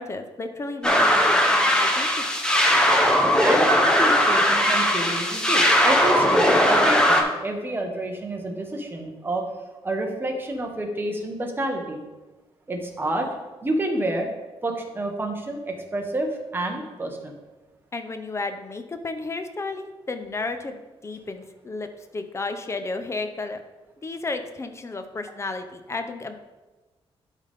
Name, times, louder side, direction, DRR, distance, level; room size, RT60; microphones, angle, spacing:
voice 1, 0.0-2.3 17.9-23.6 24.0-26.4, left 3 dB, 25° left, 8 dB, 0.7 m, -33 dB
sound 1, 0.8-7.2, equal, 10° left, 1.0 m, -19 dB
voice 2, 3.4-9.4 9.8-12.0 12.7-13.3 13.6-14.3 14.6-17.3, right 1 dB, 20° right, 2 dB, 1.2 m, -29 dB
12.0 x 4.1 x 3.6 m, 1.2 s
cardioid pair, 120°, 10 cm